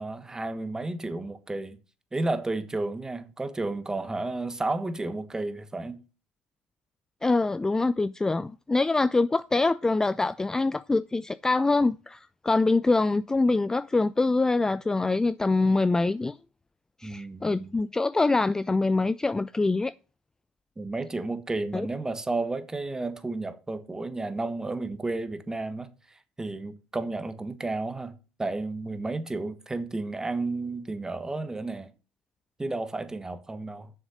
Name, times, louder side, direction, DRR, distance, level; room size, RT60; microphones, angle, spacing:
voice 1, 0.0-1.8 2.1-6.0 17.0-17.7 20.8-31.9 32.6-33.9, right 2 dB, 15° right, 1.3 m, -32 dB
voice 2, 7.2-16.3 17.0-19.9 21.7-21.9, left 3 dB, 15° left, 0.3 m, -24 dB
7.1 x 6.6 x 6.5 m
hypercardioid pair, 80°, 4 cm